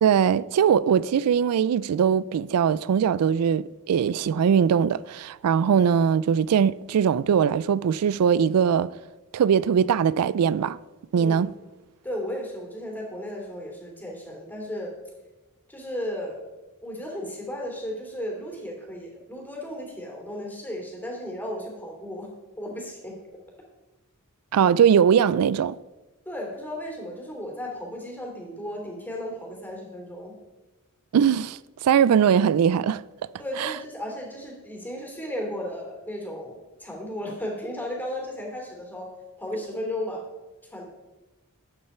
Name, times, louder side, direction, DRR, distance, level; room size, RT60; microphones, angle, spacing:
voice 1, 0.0-8.9 9.3-10.8 11.1-11.5 24.5-25.8 31.1-33.0 33.6-33.7, right 7 dB, 90° right, 0.3 m, -21 dB
voice 2, 11.1-11.5 12.0-15.0 15.7-16.4 16.8-23.2 26.2-30.4 33.4-39.1 39.4-40.2 40.7-40.9, left 1 dB, 10° left, 3.0 m, -35 dB
12.5 x 8.7 x 4.4 m
head